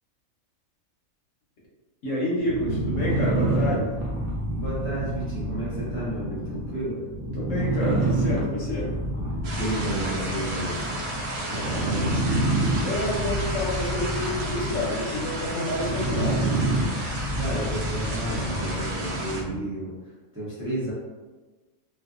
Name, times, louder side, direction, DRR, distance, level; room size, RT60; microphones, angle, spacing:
voice 1, 2.0-3.9 7.3-8.9 12.8-16.5, left 1 dB, 65° left, -4 dB, 0.9 m, -29 dB
sound 1, 2.4-19.7, right 1 dB, 55° right, 0.7 m, -28 dB
voice 2, 4.4-7.1 9.5-10.9 11.5-12.2 17.3-19.9 20.3-20.9, right 1 dB, 15° right, -9 dB, 0.5 m, -32 dB
sound 2, 9.4-19.4, right 1 dB, 75° right, 1.0 m, -33 dB
2.6 x 2.3 x 2.4 m, 1.3 s
omnidirectional pair, 1.5 m